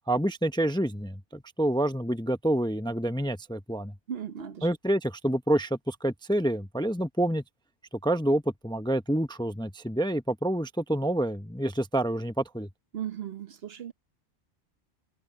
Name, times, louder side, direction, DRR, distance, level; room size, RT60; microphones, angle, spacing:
voice 1, 0.1-3.9 4.6-7.4 8.0-12.7, right 1 dB, 5° left, 0.7 m, -28 dB
voice 2, 4.1-4.7 12.9-13.9, right 9 dB, 60° right, 1.1 m, -36 dB
omnidirectional pair, 1.2 m